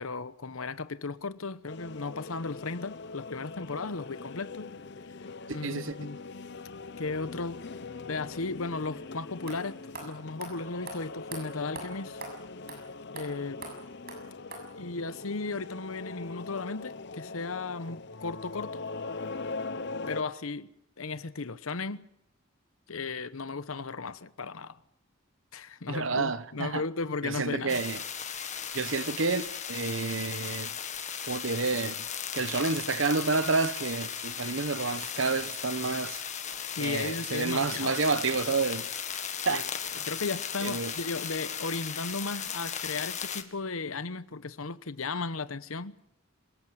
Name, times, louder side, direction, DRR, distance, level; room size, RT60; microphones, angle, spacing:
voice 1, 0.0-4.7 5.5-6.2 7.0-7.6 8.1-12.2 13.1-13.7 14.8-18.8 20.1-20.7 21.0-22.0 22.9-24.8 25.5-27.8 36.7-38.0 39.5-39.6 40.0-45.9, left 3 dB, 80° left, 1.0 m, -35 dB
sound 1, 1.7-20.2, left 3 dB, 55° left, 0.9 m, -41 dB
voice 2, 5.5-5.9 25.9-26.8 27.2-28.0 28.7-30.7 31.3-32.0 32.3-36.2 36.8-38.9 39.4-39.7 40.6-40.9, right 4 dB, 65° right, 1.0 m, -29 dB
sound 2, 9.0-9.1 9.5-9.6 9.9-10.1 10.4-10.5 10.9-11.0 11.3-11.4 11.7-11.9 12.2-12.3 12.7-12.8 13.2-13.3 13.6-13.7 14.1-14.2 14.5-14.6, right 4 dB, 50° right, 7.2 m, -40 dB
sound 3, 27.7-43.4, left 8 dB, 35° left, 1.7 m, -36 dB
27.5 x 18.0 x 8.0 m
head